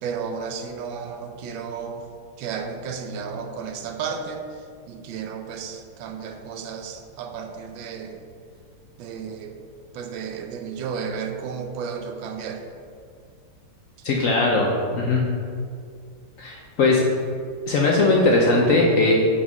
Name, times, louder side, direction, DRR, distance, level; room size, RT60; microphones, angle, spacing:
voice 1, 0.0-2.1 2.4-8.2 9.0-9.6 9.9-12.6 14.9-15.0, right 6 dB, 85° right, 6 dB, 1.4 m, -33 dB
voice 2, 14.0-14.7 14.9-15.2 16.4-17.0 17.7-19.1, left 3 dB, 70° left, -1 dB, 0.8 m, -19 dB
5.0 x 5.0 x 5.4 m, 2.3 s
omnidirectional pair, 2.1 m